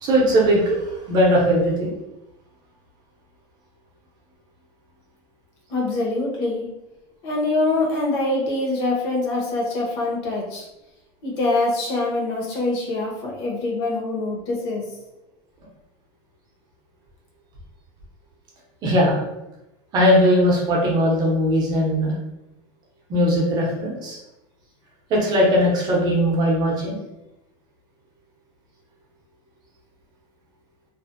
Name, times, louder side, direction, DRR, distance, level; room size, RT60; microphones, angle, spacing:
voice 1, 0.0-1.9 18.8-19.2 19.9-22.1 23.1-24.2 25.1-27.0, equal, 30° right, -3 dB, 0.6 m, -19 dB
voice 2, 5.7-6.7 7.2-10.7 11.2-14.8, left 2 dB, 65° left, -2 dB, 0.8 m, -24 dB
2.5 x 2.0 x 2.5 m, 0.92 s
cardioid pair, 170°, 14 cm